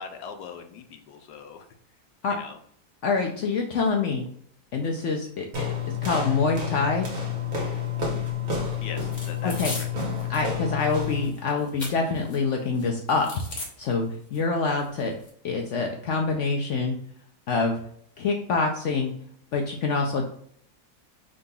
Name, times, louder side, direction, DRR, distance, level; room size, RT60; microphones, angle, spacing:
voice 1, 0.0-1.7 2.3-2.6 8.8-9.9 10.2-10.4, left 6 dB, 85° left, 6 dB, 1.2 m, -41 dB
voice 2, 3.0-4.3 4.7-5.7 6.0-7.1 9.4-9.7 10.3-13.3 13.8-15.1 15.4-17.0 17.5-17.8 18.2-19.1 19.5-20.3, left 4 dB, 70° left, 2 dB, 0.7 m, -26 dB
sound 1, 5.5-11.3, left 6 dB, 55° right, 1.7 m, -29 dB
sound 2, 9.0-10.5 10.8-12.4 12.7-13.7 14.3-14.4 14.7-15.3, left 2 dB, 30° left, 0.9 m, -39 dB
5.3 x 3.7 x 2.3 m, 0.63 s
omnidirectional pair, 1.7 m